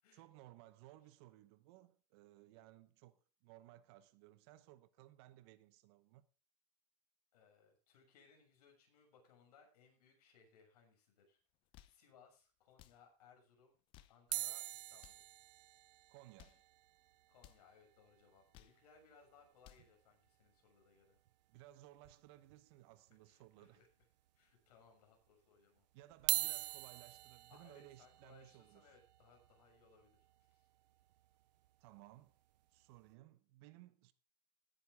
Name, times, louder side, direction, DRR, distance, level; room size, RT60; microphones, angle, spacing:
voice 1, 0.1-6.3 16.1-16.6 21.5-23.8 25.9-28.8 31.8-32.3 32.7-34.1, right 15 dB, 40° right, 0.8 m, -60 dB
voice 2, 7.3-11.4 11.9-13.8 14.1-15.2 17.3-21.2 23.3-23.9 24.3-25.8 27.5-30.7, left 6 dB, 65° left, 6.5 m, -67 dB
sound 1, 11.5-12.0 12.7-13.0 13.7-14.2 14.9-15.3 16.2-16.7 17.4-17.7 18.3-18.8 19.4-19.9, left 14 dB, 25° left, 0.6 m, -63 dB
sound 2, 14.3-18.7 19.0-19.1 19.2-19.4 19.8-19.9 21.3-21.4 22.0-22.6 23.1-23.2 24.0-24.1 26.1-32.2 32.8-33.0, right 15 dB, 85° right, 0.5 m, -44 dB
17.0 x 9.1 x 3.5 m
supercardioid pair, 165°, 21 cm